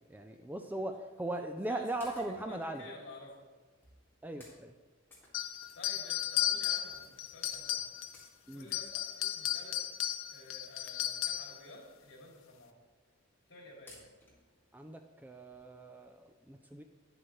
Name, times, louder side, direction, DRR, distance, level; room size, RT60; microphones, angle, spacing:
voice 1, 0.1-2.8 4.2-4.7 8.5-8.7 14.7-16.8, right 1 dB, 10° right, 6 dB, 0.3 m, -39 dB
voice 2, 1.7-3.4 5.7-8.0 8.5-9.8 10.3-12.7 13.5-14.1, left 1 dB, 60° left, -2 dB, 2.7 m, -52 dB
sound 1, 2.0-2.6 3.3-3.4 3.8-4.0 4.4-4.6 5.1-6.0 6.4-6.5 6.9-7.1 7.4-9.3 10.3-10.4 11.0-11.1 11.3-11.5 11.9-12.0 12.2-12.3 13.1-13.4 13.9-14.6 15.0-15.1 15.5-15.6, left 2 dB, 10° left, 1.9 m, -58 dB
sound 2, 5.3-8.2 8.6-11.6, left 12 dB, 80° left, 0.5 m, -35 dB
10.5 x 7.8 x 3.2 m, 1.3 s
head